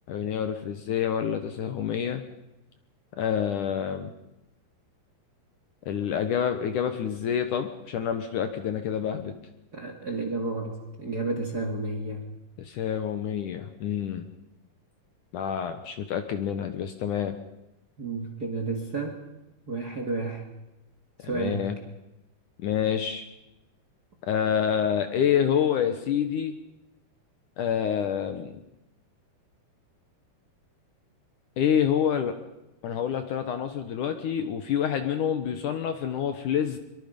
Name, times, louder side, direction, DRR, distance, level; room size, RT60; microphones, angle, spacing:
voice 1, 0.1-2.2 3.2-4.1 5.9-9.3 12.6-14.2 15.3-17.4 21.2-21.8 22.6-23.3 24.2-26.6 27.6-28.6 31.6-32.4 32.8-36.8, left 8 dB, 65° left, 8 dB, 2.3 m, -27 dB
voice 2, 9.7-12.2 18.0-19.2 19.7-20.4 21.2-21.7, right 3 dB, 30° right, 4 dB, 1.9 m, -31 dB
24.0 x 23.5 x 5.3 m, 0.95 s
omnidirectional pair, 4.6 m